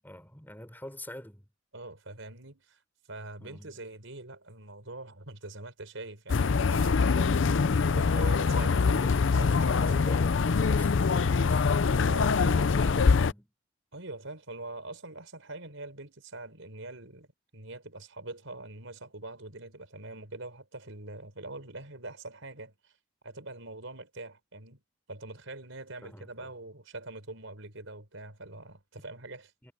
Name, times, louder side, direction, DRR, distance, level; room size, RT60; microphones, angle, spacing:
voice 1, 0.0-1.5 3.4-3.7 12.4-13.5 26.0-26.5 29.6-29.7, left 1 dB, 10° left, 5.4 m, -47 dB
voice 2, 1.7-2.8 3.1-7.4 7.8-9.9 12.1-12.6 13.9-22.9 23.2-24.8 25.1-29.7, right 2 dB, 75° right, 4.7 m, -44 dB
sound 1, 6.3-13.3, left 5 dB, 65° left, 0.5 m, -24 dB
head